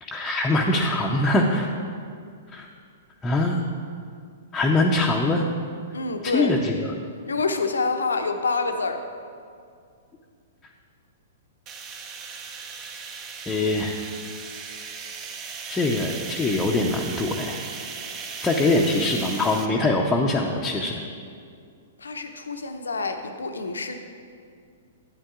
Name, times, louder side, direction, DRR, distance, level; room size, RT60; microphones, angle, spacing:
voice 1, 0.0-1.7 2.5-2.7 3.2-3.6 4.5-5.5 6.2-6.9 13.5-14.1 15.7-17.6 18.4-21.0, left 2 dB, 15° left, -2 dB, 0.6 m, -23 dB
voice 2, 5.9-6.5 7.3-9.0 22.0-24.0, left 4 dB, 75° left, 7 dB, 0.7 m, -27 dB
sound 1, 11.7-19.7, right 5 dB, 30° right, 0.6 m, -37 dB
11.0 x 8.8 x 2.4 m, 2.3 s
figure-of-eight pair, 110°, 0 cm